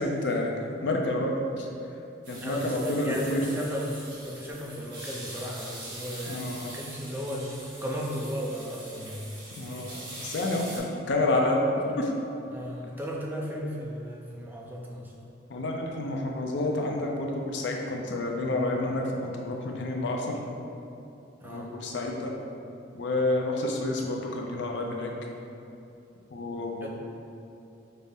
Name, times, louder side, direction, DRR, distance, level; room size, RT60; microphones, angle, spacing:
voice 1, 0.0-1.7 2.3-3.4 6.3-6.8 9.6-12.1 15.5-20.4 21.4-22.3 22.9-25.1 26.3-26.9, left 2 dB, 65° left, 0 dB, 0.5 m, -29 dB
sound 1, 2.2-10.8, right 1 dB, 75° right, 1.2 m, -43 dB
voice 2, 2.4-3.9 4.2-7.6 7.8-9.2 12.5-15.1 21.4-21.7 26.8-26.9, equal, 10° right, -2 dB, 0.4 m, -35 dB
5.4 x 2.0 x 3.5 m, 2.7 s
head